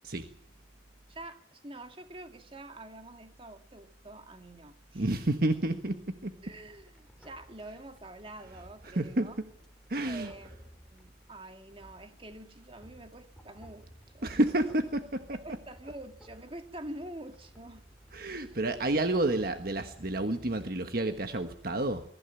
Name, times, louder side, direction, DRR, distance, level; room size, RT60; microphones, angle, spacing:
voice 1, 1.1-5.2 6.4-9.4 10.0-14.4 15.3-17.9, right 1 dB, 30° right, 6 dB, 2.2 m, -46 dB
voice 2, 4.9-6.3 8.8-9.3 9.9-10.3 14.2-15.6 15.8-15.9 18.1-22.0, right 1 dB, 55° right, 7 dB, 1.4 m, -30 dB
sound 1, 6.3-20.6, equal, ahead, 4.6 m, -57 dB
22.5 x 15.0 x 9.0 m, 0.65 s
head